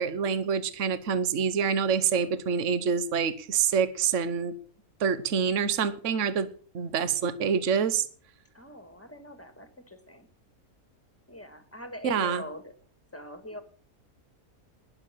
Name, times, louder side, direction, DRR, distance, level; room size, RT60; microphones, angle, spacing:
voice 1, 0.0-4.6 5.0-6.5 6.7-8.1 12.0-12.4, right 6 dB, 60° right, 1.3 m, -26 dB
voice 2, 8.5-10.3 11.3-12.7 13.1-13.6, left 1 dB, 10° left, 1.6 m, -42 dB
20.0 x 6.9 x 5.7 m
omnidirectional pair, 1.5 m